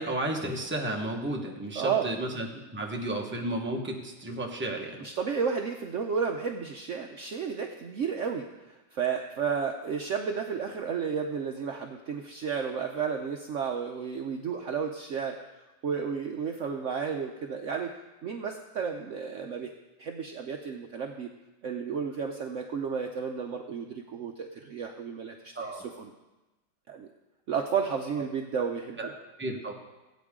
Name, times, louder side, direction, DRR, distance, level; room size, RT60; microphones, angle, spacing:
voice 1, 0.0-5.1 25.5-25.9 29.0-29.1 29.4-29.7, right 1 dB, 10° right, 0 dB, 0.8 m, -33 dB
voice 2, 1.8-2.1 5.0-15.4 15.8-17.9 18.2-19.7 20.0-21.3 21.6-26.1 26.9-27.1 27.5-29.1, right 6 dB, 75° right, 3 dB, 0.7 m, -32 dB
17.0 x 8.5 x 3.7 m, 1.1 s
omnidirectional pair, 2.1 m